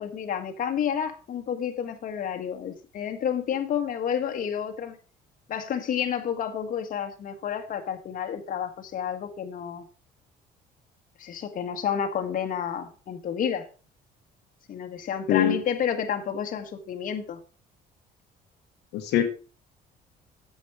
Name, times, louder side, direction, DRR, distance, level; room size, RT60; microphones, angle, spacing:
voice 1, 0.0-5.0 5.5-9.8 11.2-13.7 14.7-17.4, left 8 dB, 55° left, 1.6 m, -30 dB
voice 2, 18.9-19.3, left 10 dB, 80° left, 1.3 m, -22 dB
8.4 x 7.1 x 4.9 m
cardioid pair, 110°, 17 cm